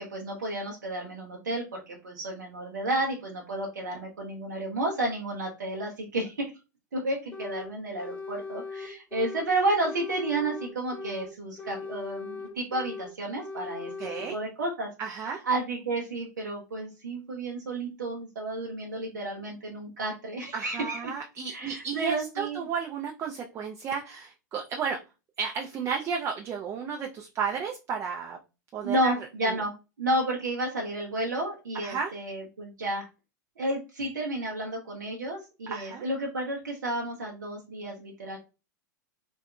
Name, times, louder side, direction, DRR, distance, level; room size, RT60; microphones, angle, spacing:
voice 1, 0.0-6.5 6.9-13.9 14.2-14.9 15.2-21.0 21.5-22.7 28.8-29.7 30.0-33.1 33.6-38.4, right 2 dB, 80° right, -1 dB, 0.6 m, -31 dB
sound 1, 7.3-7.7 8.0-9.5 9.8-11.3 11.6-13.1 13.4-14.3, left 4 dB, 10° left, 0.7 m, -39 dB
voice 2, 14.0-14.3 15.0-15.4 20.5-25.0 25.4-28.4 28.7-29.1 31.8-32.1 35.7-36.0, right 6 dB, 30° right, 1 dB, 0.4 m, -33 dB
2.6 x 2.3 x 2.3 m, 0.30 s
figure-of-eight pair, 90°, 10 cm